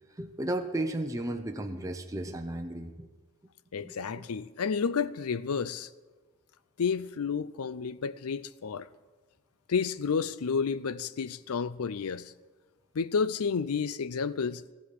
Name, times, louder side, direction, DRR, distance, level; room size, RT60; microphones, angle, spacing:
voice 1, 0.2-3.1 3.8-3.9, right 1 dB, 15° right, 0.7 m, -34 dB
voice 2, 3.7-5.9 6.8-8.9 9.7-12.3 12.9-14.6, left 5 dB, 75° left, 0.5 m, -31 dB
15.0 x 7.9 x 8.5 m
head